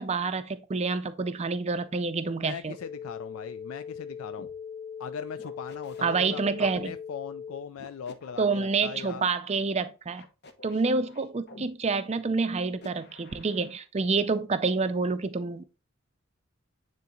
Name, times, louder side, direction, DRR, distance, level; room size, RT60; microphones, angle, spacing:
voice 1, 0.0-2.8 6.0-6.9 8.4-10.2 10.6-15.6, right 4 dB, 30° right, 0.4 m, -28 dB
voice 2, 2.4-4.5 5.0-9.2, left 7 dB, 75° left, 0.4 m, -40 dB
sound 1, 2.7-7.7, left 7 dB, 30° left, 1.0 m, -40 dB
sound 2, 4.4-4.5 5.4-6.9 7.8-9.3 10.1-11.7 12.5-13.8, left 2 dB, 50° left, 0.8 m, -50 dB
9.3 x 3.8 x 3.0 m
head